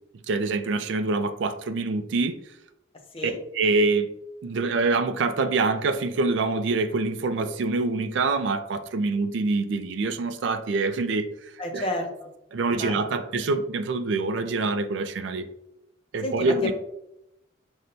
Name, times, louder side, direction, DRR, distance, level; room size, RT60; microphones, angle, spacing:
voice 1, 0.3-2.4 3.5-4.1 4.4-11.3 11.7-11.9 12.5-15.5 16.1-16.7, right 3 dB, 65° right, 10 dB, 0.3 m, -25 dB
voice 2, 11.6-12.1 12.8-13.0 16.2-16.7, left 1 dB, 30° left, 3 dB, 0.6 m, -30 dB
5.8 x 2.1 x 2.6 m, 0.84 s
head